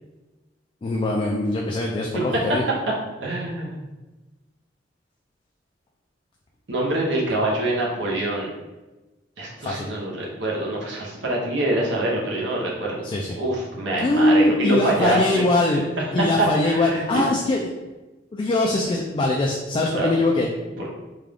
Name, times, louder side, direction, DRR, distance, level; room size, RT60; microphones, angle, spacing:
voice 1, 0.8-2.6 9.6-9.9 13.0-13.4 14.0-15.8 16.1-17.6 18.3-20.5, left 2 dB, 30° left, -1 dB, 0.3 m, -22 dB
voice 2, 3.2-3.8 6.7-8.5 9.4-13.0 13.4-15.8 16.4-17.2 19.9-20.1 20.8-20.9, right 1 dB, 75° right, -3 dB, 0.9 m, -25 dB
3.6 x 2.3 x 3.4 m, 1.1 s
head